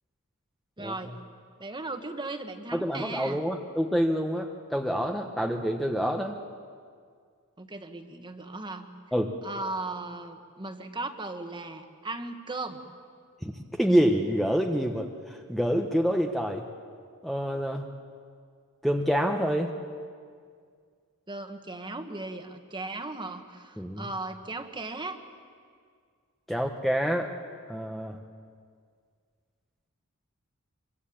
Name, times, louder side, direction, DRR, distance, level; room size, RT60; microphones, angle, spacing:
voice 1, 0.8-1.1 1.6-3.4 7.6-8.9 9.4-12.8 21.3-25.2, right 2 dB, 20° right, 6 dB, 1.6 m, -37 dB
voice 2, 2.7-6.4 9.1-9.3 13.4-16.7 17.2-17.9 18.8-19.7 23.8-24.0 26.5-27.3 27.7-28.2, equal, ahead, 2 dB, 1.1 m, -27 dB
26.5 x 23.0 x 8.7 m, 2.1 s
head